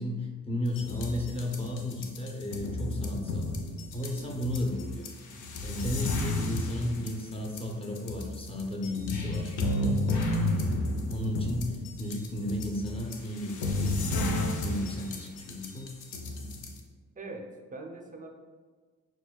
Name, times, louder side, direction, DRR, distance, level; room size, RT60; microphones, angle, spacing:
voice 1, 0.0-3.5 3.9-5.1 5.6-9.6 10.2-16.0, left 1 dB, 20° left, 1 dB, 0.6 m, -34 dB
sound 1, 0.7-16.8, left 2 dB, 80° left, 0.6 m, -32 dB
voice 2, 17.2-18.3, right 2 dB, 25° right, 3 dB, 0.5 m, -42 dB
6.1 x 2.3 x 2.3 m, 1.4 s
cardioid pair, 90°, 30 cm